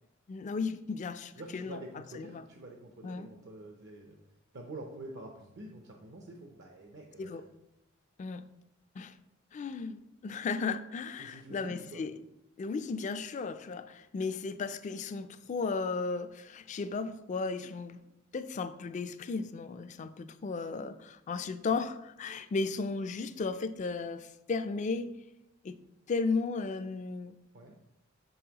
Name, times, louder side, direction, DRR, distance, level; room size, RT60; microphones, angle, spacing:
voice 1, 0.3-2.4 3.0-3.3 7.2-7.4 8.2-8.4 8.9-9.2 9.5-12.2 12.6-18.0 18.3-25.2 25.6-25.8 26.1-27.3, left 4 dB, 35° left, 12 dB, 0.3 m, -35 dB
voice 2, 1.4-4.1 4.5-7.4 11.2-12.0 27.5-27.7, right 2 dB, 60° right, 2 dB, 0.6 m, -47 dB
6.1 x 5.5 x 2.9 m, 0.86 s
head